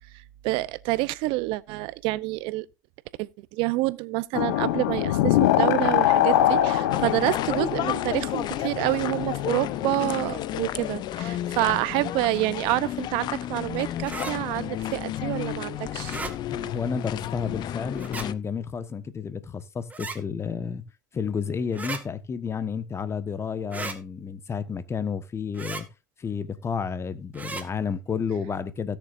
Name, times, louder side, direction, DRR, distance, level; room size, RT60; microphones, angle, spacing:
voice 1, 0.4-2.7 3.2-16.2, right 20 dB, 65° right, 0.7 m, -28 dB
sound 1, 4.3-11.3, left 12 dB, 75° left, 1.0 m, -24 dB
sound 2, 6.9-18.3, left 12 dB, 50° left, 0.7 m, -32 dB
sound 3, 14.0-14.3 16.0-16.3 18.0-18.3 19.9-20.2 21.7-22.0 23.7-24.0 25.5-25.8 27.3-27.6, right 3 dB, 15° right, 2.0 m, -35 dB
voice 2, 16.5-20.8 21.1-25.9 26.2-29.0, left 6 dB, 30° left, 1.3 m, -31 dB
17.0 x 6.9 x 2.6 m
hypercardioid pair, 85°, 10 cm